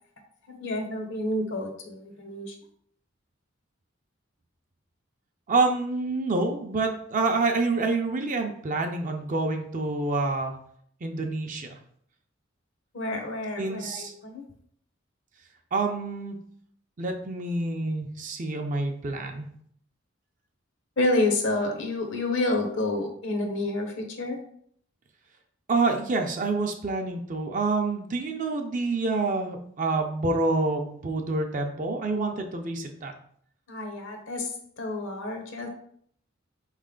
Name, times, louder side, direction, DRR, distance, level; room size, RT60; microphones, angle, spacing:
voice 1, 0.5-2.5 12.9-14.4 21.0-24.4 33.7-34.5 34.8-35.7, left 2 dB, 65° left, 3 dB, 0.9 m, -29 dB
voice 2, 5.5-10.5 11.0-11.8 13.6-14.1 15.7-16.4 17.0-19.5 25.7-33.1, right 3 dB, 40° right, 4 dB, 0.5 m, -27 dB
4.3 x 3.2 x 3.7 m, 0.64 s
head